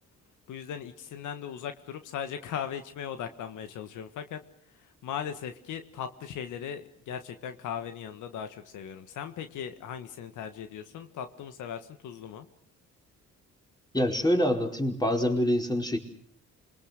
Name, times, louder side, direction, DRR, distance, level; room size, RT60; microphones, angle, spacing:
voice 1, 0.5-4.4 4.8-12.5, left 8 dB, 80° left, 8 dB, 1.7 m, -38 dB
voice 2, 13.9-16.0, equal, 15° left, 2 dB, 4.9 m, -25 dB
27.5 x 22.5 x 6.7 m, 0.65 s
cardioid pair, 90°, 30 cm